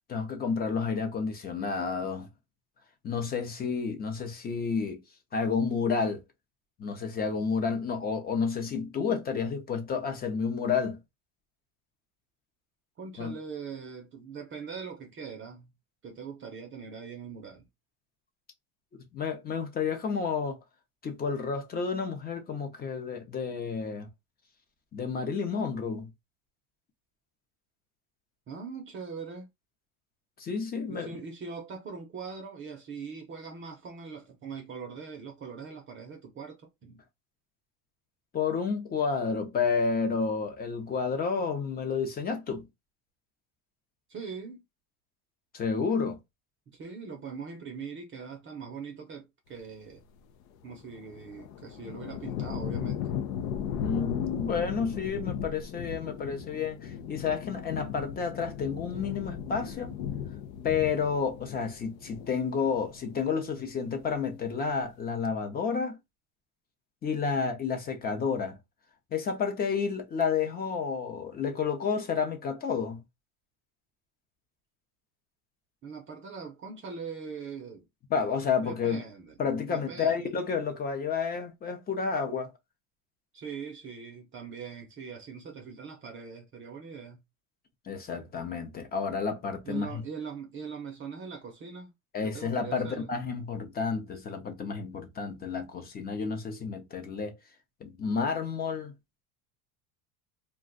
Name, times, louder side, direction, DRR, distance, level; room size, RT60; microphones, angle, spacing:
voice 1, 0.1-2.3 3.0-5.0 5.3-6.2 6.8-11.0 13.2-13.3 19.1-20.6 21.0-24.1 24.9-26.1 30.4-31.1 38.3-42.7 45.5-46.2 53.8-59.9 60.6-66.0 67.0-68.6 69.1-73.0 78.1-79.0 79.4-82.5 87.9-90.0 92.1-97.4 97.8-98.9, left 5 dB, 25° left, 0.6 m, -30 dB
voice 2, 13.0-15.7 16.0-17.7 28.5-29.5 30.9-37.0 44.1-44.6 46.7-50.0 50.6-53.0 75.8-77.8 78.6-79.4 79.7-80.3 83.3-87.2 89.6-91.9 92.2-93.1, right 5 dB, 30° right, 0.6 m, -41 dB
sound 1, 50.6-63.4 63.7-64.4, left 8 dB, 85° left, 0.7 m, -37 dB
2.5 x 2.3 x 3.7 m
cardioid pair, 140°, 41 cm